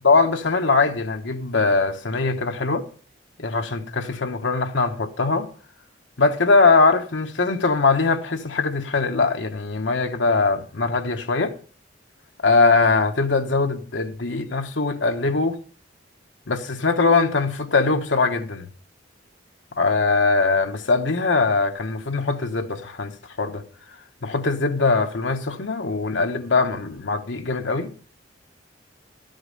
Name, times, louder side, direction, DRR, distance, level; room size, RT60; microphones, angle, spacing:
voice 1, 0.0-2.9 3.4-5.5 6.2-11.5 12.4-15.6 16.5-18.7 19.8-23.1 23.4-23.6 24.2-27.9, left 3 dB, 85° left, 1.2 m, -21 dB
13.0 x 7.9 x 5.3 m
head